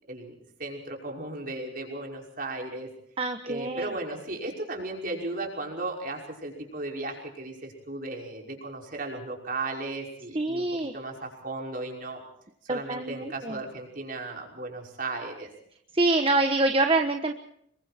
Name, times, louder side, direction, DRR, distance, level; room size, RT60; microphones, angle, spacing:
voice 1, 0.1-2.9 3.4-12.2 12.7-15.5, right 2 dB, 50° right, 1 dB, 5.7 m, -36 dB
voice 2, 3.2-3.9 10.3-10.9 12.7-13.6 15.9-17.3, right 2 dB, 30° right, 6 dB, 1.2 m, -25 dB
27.0 x 23.0 x 4.4 m, 0.71 s
head